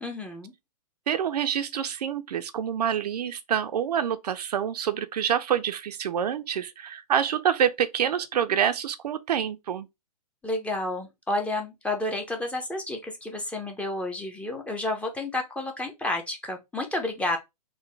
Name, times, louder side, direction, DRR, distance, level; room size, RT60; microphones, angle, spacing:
voice 1, 0.0-0.5 10.4-17.4, left 2 dB, 5° left, 0.6 m, -30 dB
voice 2, 1.1-9.9, right 9 dB, 70° right, 0.5 m, -27 dB
3.9 x 2.1 x 3.2 m
hypercardioid pair, 125°, 21 cm